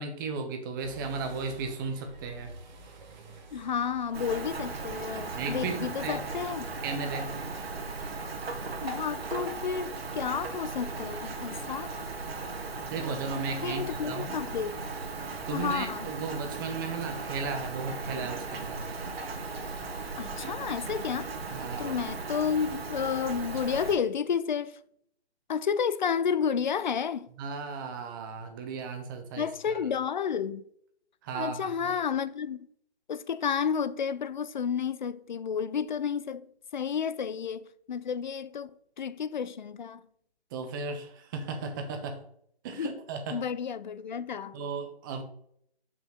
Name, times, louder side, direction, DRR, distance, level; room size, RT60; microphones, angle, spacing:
voice 1, 0.0-2.5 5.3-6.2 6.8-7.4 12.9-14.4 15.5-18.8 21.5-22.0 27.4-29.5 31.2-32.0 40.5-42.2 42.6-43.4 44.5-45.2, right 4 dB, 20° right, 1.1 m, -35 dB
sound 1, 0.8-6.7, right 1 dB, 45° right, 1.9 m, -49 dB
voice 2, 3.5-6.7 8.8-11.9 13.6-14.8 15.5-16.1 20.2-21.3 21.8-24.8 25.5-27.3 29.4-30.6 31.3-32.7 33.1-40.0 42.8-43.0 43.3-44.6, left 7 dB, 45° left, 0.6 m, -31 dB
Rain, 4.1-24.0, right 3 dB, 65° right, 1.9 m, -37 dB
7.0 x 6.2 x 5.7 m
hypercardioid pair, 155°, 32 cm